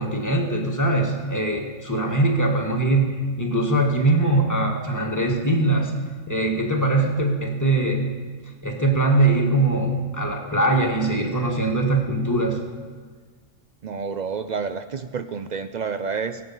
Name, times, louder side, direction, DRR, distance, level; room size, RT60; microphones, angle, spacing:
voice 1, 0.0-5.9 6.3-8.1 8.6-12.6, right 2 dB, 15° left, 1 dB, 1.5 m, -22 dB
voice 2, 13.8-16.4, right 5 dB, 65° right, 10 dB, 0.4 m, -29 dB
22.5 x 7.8 x 5.5 m, 1.5 s
omnidirectional pair, 1.4 m